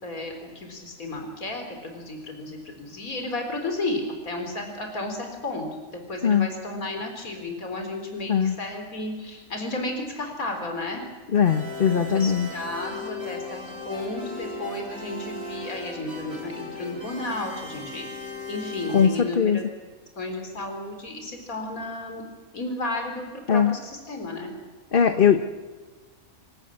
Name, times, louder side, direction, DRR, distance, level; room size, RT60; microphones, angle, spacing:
voice 1, 0.0-5.7 6.1-11.0 12.1-18.1 18.5-19.6 20.2-22.2 22.5-24.5, left 2 dB, 80° left, 4 dB, 4.3 m, -33 dB
voice 2, 11.3-12.5 18.9-19.6 23.5-23.8 24.9-25.4, left 7 dB, 45° left, 7 dB, 1.1 m, -20 dB
sound 1, 11.4-19.1, left 3 dB, 75° right, 8.4 m, -37 dB
26.0 x 17.5 x 8.6 m, 1.3 s
omnidirectional pair, 1.5 m